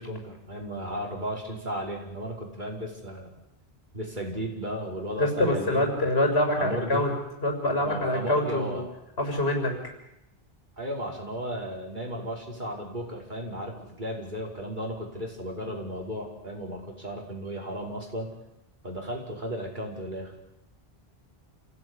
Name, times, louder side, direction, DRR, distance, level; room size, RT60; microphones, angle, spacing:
voice 1, 0.0-3.3 3.9-5.9 6.6-7.0 7.8-8.9 10.8-18.3 18.8-20.4, equal, 50° right, -1 dB, 5.6 m, -35 dB
voice 2, 5.2-7.1 7.4-8.8 9.2-9.7, left 1 dB, 75° left, 3 dB, 6.5 m, -25 dB
28.5 x 16.5 x 10.0 m, 0.88 s
omnidirectional pair, 1.1 m